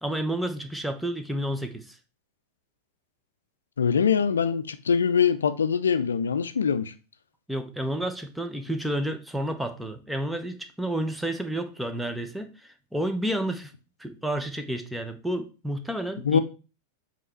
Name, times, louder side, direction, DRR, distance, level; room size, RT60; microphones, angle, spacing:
voice 1, 0.0-2.0 7.5-13.7 14.0-16.4, right 1 dB, 5° right, 0.8 m, -30 dB
voice 2, 3.8-6.9 16.2-16.4, left 6 dB, 70° left, 0.6 m, -23 dB
7.7 x 3.1 x 4.5 m
figure-of-eight pair, 90°, 0 cm